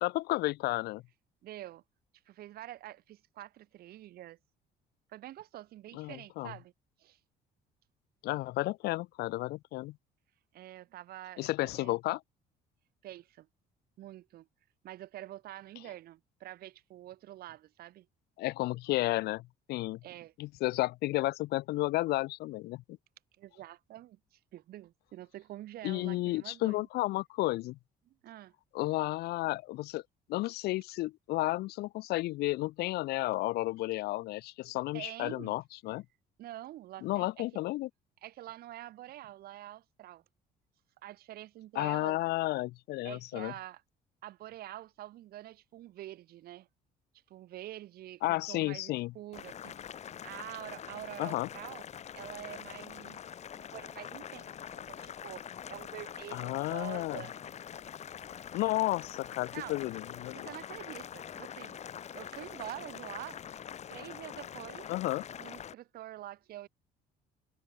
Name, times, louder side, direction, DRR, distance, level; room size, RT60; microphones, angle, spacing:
voice 1, 0.0-1.0 5.9-6.5 8.2-10.0 11.4-12.2 18.4-20.0 20.4-23.0 25.8-27.8 28.7-30.0 30.3-36.0 37.0-37.9 41.8-43.5 48.2-49.1 51.2-51.5 56.3-57.2 58.5-60.5 64.9-65.2, left 18 dB, 75° left, 0.4 m, -32 dB
voice 2, 1.4-1.8 2.3-4.4 5.1-6.7 7.0-7.2 10.5-12.0 13.0-13.5 14.0-14.5 14.8-18.1 20.0-20.3 23.4-26.9 28.1-28.5 34.9-35.6 36.4-37.4 38.2-40.2 41.0-42.2 43.0-43.8 44.2-46.7 47.3-49.8 50.2-51.8 52.1-53.3 53.6-57.3 59.5-59.8 60.3-61.8 62.1-63.4 63.9-64.9 65.4-66.7, right 14 dB, 65° right, 0.9 m, -46 dB
Boiling, 49.3-65.7, left 9 dB, 40° left, 0.9 m, -45 dB
cardioid pair, 110°, 17 cm